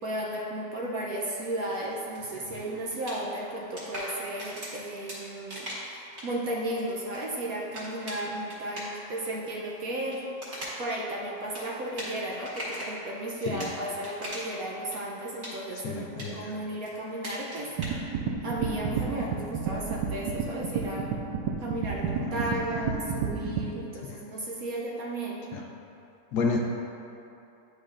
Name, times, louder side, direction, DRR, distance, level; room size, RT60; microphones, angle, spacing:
voice 1, 0.0-10.2 10.8-18.1 18.4-21.1 21.6-25.5, right 1 dB, 65° right, -3 dB, 1.0 m, -34 dB
sound 1, 1.2-12.9 13.4-14.6 14.9-17.9, equal, 40° right, 1.8 m, -42 dB
voice 2, 15.8-16.5 22.3-22.5 24.1-24.2 26.3-26.6, left 4 dB, 70° left, 1 dB, 1.0 m, -30 dB
sound 2, 17.8-23.7, right 6 dB, 85° right, 1.3 m, -30 dB
10.0 x 5.4 x 2.5 m, 2.8 s
omnidirectional pair, 1.9 m